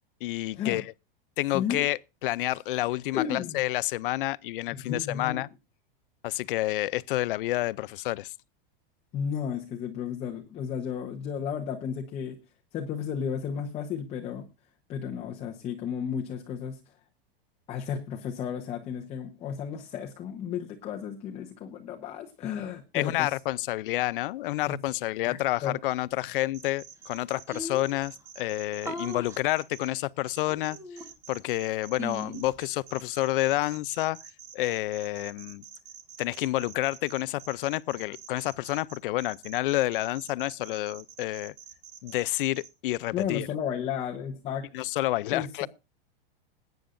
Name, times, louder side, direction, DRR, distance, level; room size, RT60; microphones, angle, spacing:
voice 1, 0.2-0.8 1.4-5.5 6.2-8.3 22.9-30.8 31.3-34.2 34.5-35.6 36.2-41.5 42.0-43.5 44.7-45.7, left 17 dB, 60° left, 0.6 m, -29 dB
voice 2, 1.5-1.9 3.1-3.6 4.7-5.4 9.1-12.4 12.7-14.5 14.9-16.8 17.7-23.4 24.7-24.8 25.2-25.8 43.1-44.7 45.3-45.7, left 8 dB, 20° left, 1.0 m, -33 dB
sound 1, 26.5-29.9 30.3-42.7, right 9 dB, 35° right, 1.8 m, -47 dB
sound 2, 26.8-26.9 27.1-27.2 27.5-28.0 28.8-29.4 30.5-31.4 32.0-32.6, equal, 10° right, 1.4 m, -38 dB
21.0 x 9.3 x 2.6 m
supercardioid pair, 165°, 30 cm